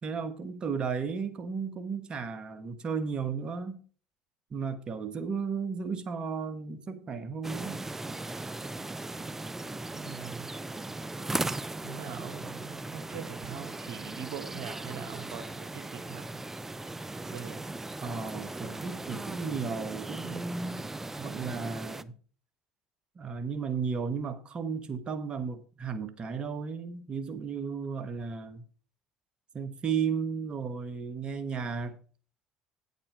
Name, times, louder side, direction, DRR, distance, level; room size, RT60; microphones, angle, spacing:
voice 1, 0.0-3.8 4.5-7.8 18.0-20.8 21.2-22.1 23.2-28.6 29.5-32.0, right 5 dB, 40° right, 1.4 m, -34 dB
sound 1, 7.4-22.0, right 2 dB, 15° right, 0.6 m, -38 dB
voice 2, 9.9-10.5 11.8-16.4 17.3-17.7, right 9 dB, 70° right, 1.2 m, -42 dB
8.7 x 8.2 x 4.7 m
hypercardioid pair, 70°, 3 cm